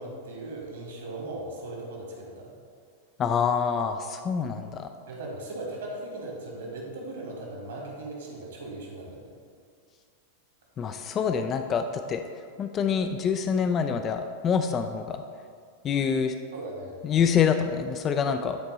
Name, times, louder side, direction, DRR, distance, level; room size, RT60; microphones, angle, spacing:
voice 1, 0.0-2.5 5.1-9.3 16.5-17.0, right 2 dB, 60° right, -1 dB, 1.8 m, -38 dB
voice 2, 3.2-4.9 10.8-12.2 12.6-15.2 15.8-16.3 17.0-18.6, left 7 dB, 30° left, 7 dB, 0.4 m, -26 dB
10.0 x 4.4 x 4.0 m, 2.2 s
figure-of-eight pair, 90°, 0 cm